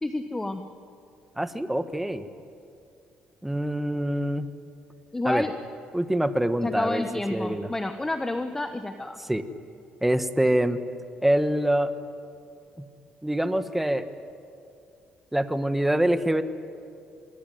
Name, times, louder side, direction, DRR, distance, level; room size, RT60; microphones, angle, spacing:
voice 1, 0.0-0.6 5.1-5.5 6.6-9.2, left 2 dB, 15° left, 7 dB, 1.2 m, -29 dB
voice 2, 1.4-2.2 3.4-4.5 5.2-5.4 5.9-7.0 7.3-7.7 9.2-9.4 10.0-10.8 11.2-11.9 12.8-12.9 13.2-14.1 15.3-16.4, right 1 dB, 5° right, 10 dB, 1.3 m, -25 dB
25.0 x 21.5 x 9.3 m, 2.5 s
cardioid pair, 105°, 3 cm